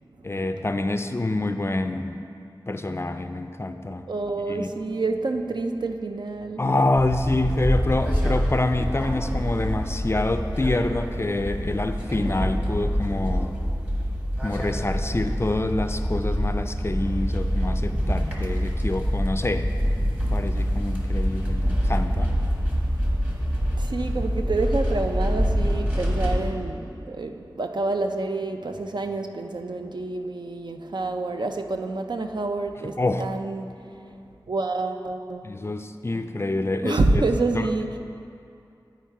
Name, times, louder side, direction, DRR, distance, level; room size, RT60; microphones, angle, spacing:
voice 1, 0.2-2.2 2.7-4.1 4.5-4.7 6.6-13.5 14.4-19.7 20.3-22.3 33.0-33.3 35.4-37.3 37.5-37.7, left 2 dB, 30° left, 8 dB, 0.4 m, -26 dB
voice 2, 4.1-6.6 23.8-33.7 34.5-35.8 36.1-36.3 36.8-38.0, right 3 dB, 65° right, 6 dB, 0.5 m, -28 dB
sound 1, 6.9-26.5, equal, 20° right, 1.2 m, -26 dB
10.5 x 4.6 x 4.6 m, 2.5 s
wide cardioid pair, 55°, 8 cm